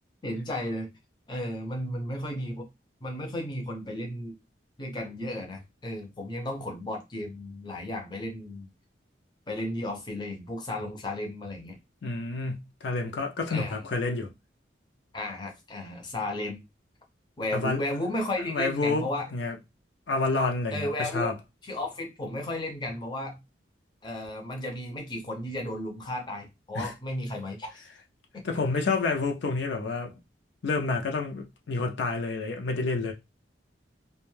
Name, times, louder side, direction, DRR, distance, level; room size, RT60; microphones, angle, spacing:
voice 1, 0.2-0.9 1.3-2.7 3.0-4.4 4.8-8.7 9.5-11.8 13.5-13.9 15.1-16.6 17.4-19.3 20.7-21.3 21.6-23.4 24.0-27.9 28.3-28.4, left 1 dB, 25° left, 0.6 m, -34 dB
voice 2, 12.0-14.3 17.5-17.8 18.5-19.0 19.3-19.5 20.1-21.4 26.7-26.9 28.4-30.1 30.6-33.1, left 3 dB, 70° left, 0.5 m, -29 dB
2.5 x 2.2 x 3.1 m
head